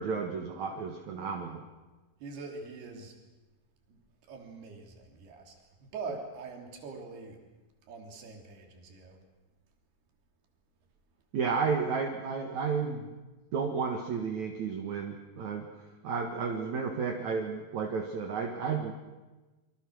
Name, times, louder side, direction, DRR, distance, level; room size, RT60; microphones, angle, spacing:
voice 1, 0.0-1.6 11.3-13.1 13.5-15.7 16.0-18.9, right 5 dB, 55° right, 2 dB, 2.7 m, -32 dB
voice 2, 2.2-3.2 3.9-4.0 4.3-5.6 5.8-7.4 7.9-9.2, right 4 dB, 90° right, 3 dB, 5.2 m, -43 dB
28.0 x 24.0 x 6.4 m, 1.2 s
omnidirectional pair, 4.5 m